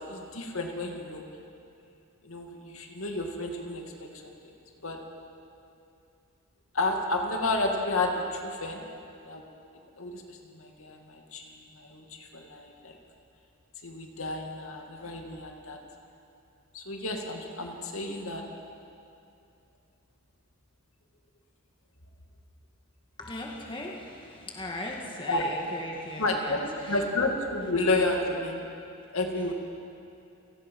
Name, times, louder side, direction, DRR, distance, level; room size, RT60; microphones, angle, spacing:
voice 1, 0.1-1.2 2.2-4.5 4.8-5.0 6.7-8.9 9.3-9.4 10.0-13.0 13.8-15.8 16.7-18.5 25.3-25.4 26.2-28.7 29.1-29.5, left 2 dB, 75° left, 2 dB, 2.4 m, -31 dB
voice 2, 23.2-26.6 26.8-27.0, left 1 dB, 25° left, -1 dB, 2.0 m, -38 dB
29.5 x 18.0 x 5.5 m, 2.6 s
head